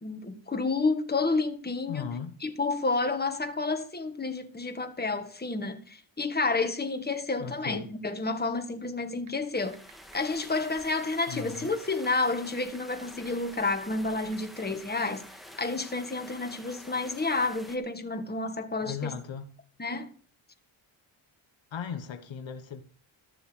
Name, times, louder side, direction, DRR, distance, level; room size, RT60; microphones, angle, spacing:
voice 1, 0.0-2.1 2.4-9.8 10.1-15.3 15.6-19.1 19.8-20.1, left 3 dB, 20° left, 1.8 m, -30 dB
voice 2, 1.9-2.4 7.4-7.9 11.3-11.7 18.8-19.5 21.7-22.8, left 7 dB, 65° left, 1.5 m, -37 dB
sound 1, 9.3-9.4 9.7-10.1 10.4-10.5 11.2-12.9 13.3-13.4 14.2-14.3, right 9 dB, 90° right, 2.7 m, -50 dB
sound 2, 9.5-17.8, equal, ahead, 2.0 m, -48 dB
14.0 x 7.0 x 6.3 m
cardioid pair, 100°, 49 cm